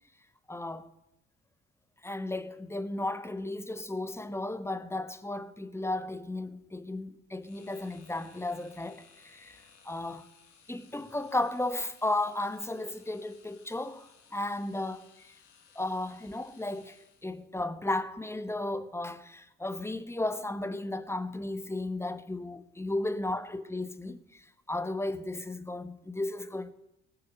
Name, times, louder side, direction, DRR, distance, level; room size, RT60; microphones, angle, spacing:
voice 1, 0.5-0.9 2.0-9.6 9.8-10.3 10.7-15.3 15.7-26.7, left 2 dB, 5° left, 1.0 m, -34 dB
sound 1, 7.4-17.5, left 6 dB, 80° left, 1.5 m, -60 dB
15.0 x 6.7 x 9.9 m
figure-of-eight pair, 40°, 36 cm